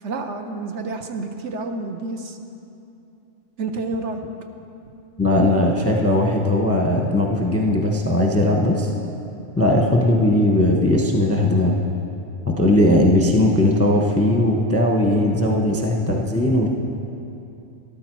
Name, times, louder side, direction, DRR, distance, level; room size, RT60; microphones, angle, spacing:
voice 1, 0.0-2.4 3.6-4.2, right 3 dB, 60° right, 5 dB, 1.0 m, -29 dB
voice 2, 5.2-8.9 9.6-11.8 12.5-16.7, left 1 dB, 15° left, 1 dB, 0.6 m, -18 dB
13.0 x 12.0 x 4.6 m, 2.8 s
omnidirectional pair, 1.5 m